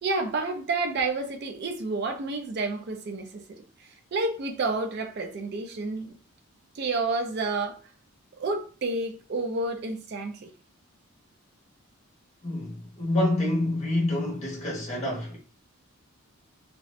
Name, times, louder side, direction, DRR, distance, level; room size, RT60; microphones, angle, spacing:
voice 1, 0.0-6.1 6.7-7.8 8.4-10.5, right 3 dB, 45° right, 0.3 m, -30 dB
voice 2, 12.4-15.4, left 1 dB, 30° left, 0.9 m, -27 dB
2.6 x 2.1 x 2.4 m
head